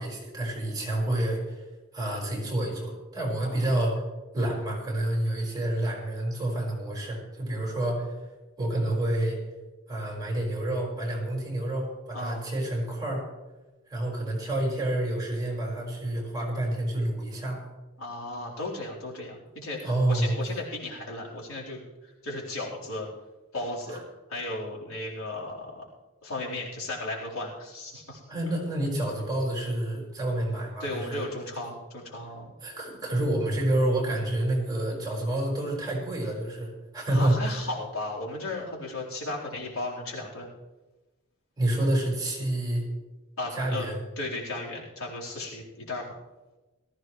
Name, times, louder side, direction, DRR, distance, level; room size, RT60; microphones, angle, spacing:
voice 1, 0.0-1.6 1.9-4.0 4.3-8.1 8.6-9.4 9.9-13.2 13.9-17.6 19.8-20.3 23.9-24.0 28.3-31.2 32.6-37.6 41.6-42.8 43.5-44.0, right 1 dB, 20° right, -3 dB, 5.1 m, -28 dB
voice 2, 12.1-12.4 18.0-23.1 23.5-24.0 24.3-25.8 26.2-28.2 30.8-32.5 37.1-40.5 43.4-43.9 44.2-46.2, left 2 dB, 85° left, -4 dB, 4.1 m, -35 dB
19.0 x 15.0 x 3.2 m, 1.1 s
head